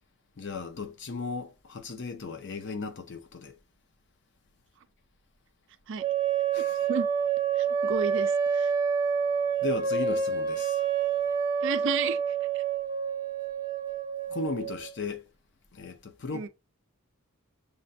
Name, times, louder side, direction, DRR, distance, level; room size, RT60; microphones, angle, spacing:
voice 1, 0.4-3.6 6.5-6.9 9.6-10.8 14.3-15.2 15.7-16.5, left 4 dB, 55° left, 0.6 m, -36 dB
sound 1, 6.0-15.0, right 6 dB, 20° right, 0.7 m, -28 dB
voice 2, 6.6-7.1 7.6-8.7 11.6-12.2 12.5-12.6 16.3-16.5, right 6 dB, 55° right, 0.4 m, -32 dB
6.5 x 2.2 x 2.6 m
head